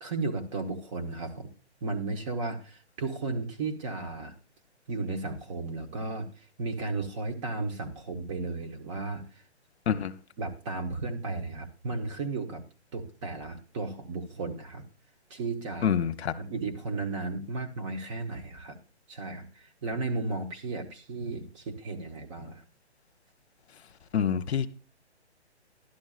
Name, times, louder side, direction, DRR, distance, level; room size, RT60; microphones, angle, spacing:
voice 1, 0.0-1.5 1.8-4.3 4.9-9.4 10.4-12.6 12.9-14.8 15.3-15.9 16.4-18.8 19.1-22.6, right 3 dB, 25° right, 1.3 m, -34 dB
voice 2, 9.9-10.2 15.8-16.4 24.1-24.7, left 8 dB, 65° left, 0.9 m, -26 dB
12.5 x 11.5 x 2.4 m
hypercardioid pair, 155°, 34 cm